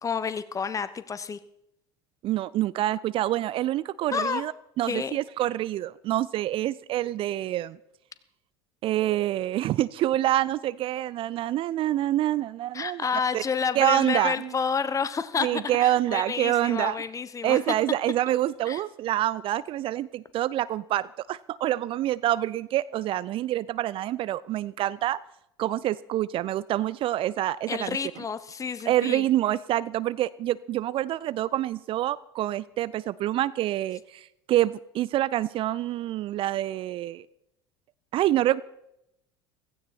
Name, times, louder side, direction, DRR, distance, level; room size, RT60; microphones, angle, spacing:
voice 1, 0.0-1.4 4.1-4.4 4.9-5.2 12.7-17.6 18.7-18.8 27.7-29.2, left 6 dB, 25° left, 14 dB, 1.0 m, -29 dB
voice 2, 2.2-4.5 4.8-7.8 8.8-13.1 13.3-13.4 13.8-14.5 15.4-17.0 17.4-25.2 25.6-28.0 28.9-37.2 38.1-38.6, right 14 dB, 40° right, 20 dB, 0.5 m, -26 dB
16.5 x 15.5 x 4.4 m, 0.79 s
figure-of-eight pair, 70°, 14 cm